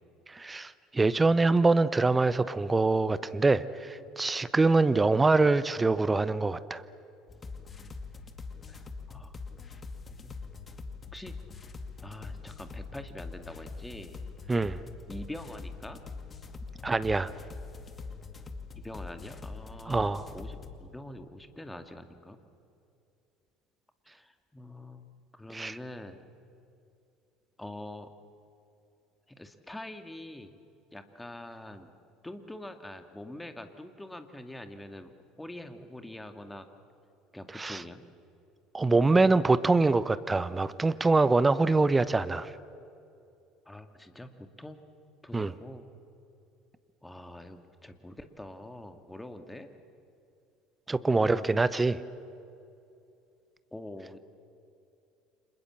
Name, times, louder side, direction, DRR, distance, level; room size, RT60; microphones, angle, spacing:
voice 1, 0.4-6.8 14.5-14.8 16.8-17.3 19.9-20.2 25.5-25.8 37.6-37.8 38.7-42.5 45.3-45.5 50.9-52.0, right 3 dB, 15° right, 16 dB, 0.9 m, -24 dB
sound 1, 7.3-20.8, left 4 dB, 25° left, 2.3 m, -43 dB
voice 2, 8.7-9.3 10.2-10.3 11.1-11.4 12.0-14.2 15.1-16.0 18.8-22.4 24.0-26.2 27.6-28.1 29.3-30.5 30.9-31.9 32.2-35.1 35.4-36.7 37.3-38.0 43.7-44.9 45.2-45.9 47.0-49.7 51.0-51.5 53.7-54.2, left 1 dB, 10° left, 7 dB, 2.3 m, -44 dB
29.5 x 26.5 x 7.6 m, 2.6 s
figure-of-eight pair, 60°, 0 cm